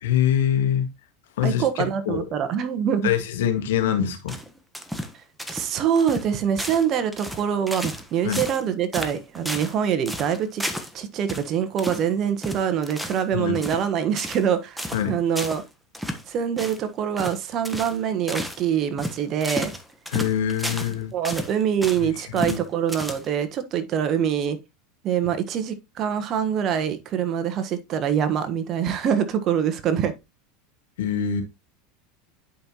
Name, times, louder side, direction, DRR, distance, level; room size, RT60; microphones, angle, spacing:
voice 1, 0.0-0.9 1.4-2.3 3.0-4.4 8.2-8.4 13.3-13.6 14.9-15.2 20.1-21.1 22.0-22.6 25.2-25.3 31.0-31.4, left 9 dB, 75° left, 1.8 m, -24 dB
voice 2, 1.4-3.1 5.5-10.6 10.9-15.6 16.3-19.7 21.1-24.6 25.0-30.1, right 8 dB, 45° right, 1.4 m, -24 dB
sound 1, 4.3-5.1 5.4-5.7 6.0-6.3 6.6-6.9 7.1-8.1 8.3-8.6 8.9-9.8 10.1-10.9 11.3-11.5 11.8-12.1 12.4-13.3 13.5-13.9 14.2-14.5 14.8-15.0 15.4-15.6 15.9-16.2 16.6-16.8 17.2-17.4 17.6-18.0 18.3-18.6 19.0-20.9 21.2-22.0 22.4-22.6 22.9-23.4, equal, 5° right, 1.3 m, -32 dB
10.0 x 5.4 x 3.0 m
hypercardioid pair, 95°, 0 cm